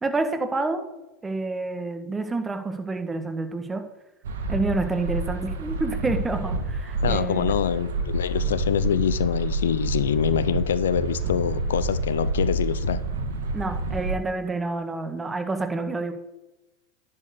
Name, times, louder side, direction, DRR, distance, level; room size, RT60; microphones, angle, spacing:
voice 1, 0.0-0.8 1.2-3.8 4.5-7.5 13.5-16.1, right 3 dB, 15° right, 1.5 m, -28 dB
sound 1, 4.2-14.2, right 2 dB, 70° right, 1.7 m, -28 dB
voice 2, 7.0-13.0, left 8 dB, 75° left, 0.5 m, -25 dB
10.5 x 4.6 x 8.1 m
hypercardioid pair, 90°, 0 cm